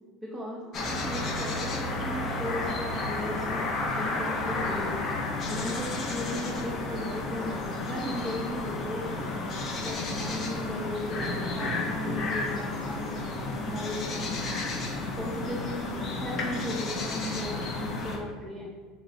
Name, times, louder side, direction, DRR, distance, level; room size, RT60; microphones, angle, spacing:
voice 1, 0.2-5.0 5.5-9.3 9.8-14.5 15.1-18.7, left 1 dB, 10° right, -4 dB, 0.6 m, -36 dB
sound 1, 0.7-18.2, left 2 dB, 45° left, 0.6 m, -32 dB
3.1 x 2.5 x 4.1 m, 1.5 s
supercardioid pair, 100°, 0 cm